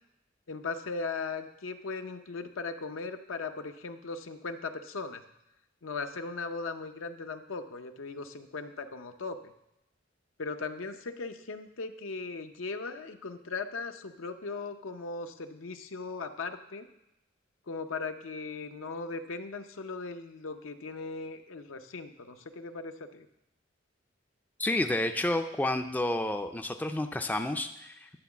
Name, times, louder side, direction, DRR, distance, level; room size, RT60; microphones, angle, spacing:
voice 1, 0.5-5.2 5.8-9.4 10.4-16.9 17.7-23.3, left 4 dB, 75° left, 8 dB, 0.6 m, -38 dB
voice 2, 24.6-28.1, left 1 dB, 10° left, 6 dB, 0.3 m, -30 dB
11.0 x 3.9 x 7.1 m, 0.85 s
head